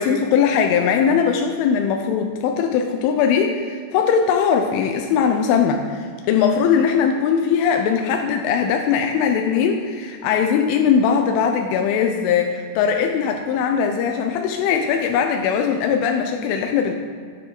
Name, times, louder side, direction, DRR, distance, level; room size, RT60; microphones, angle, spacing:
voice 1, 0.0-16.9, left 7 dB, 90° left, 3 dB, 3.3 m, -20 dB
15.5 x 9.5 x 3.9 m, 2.1 s
omnidirectional pair, 5.5 m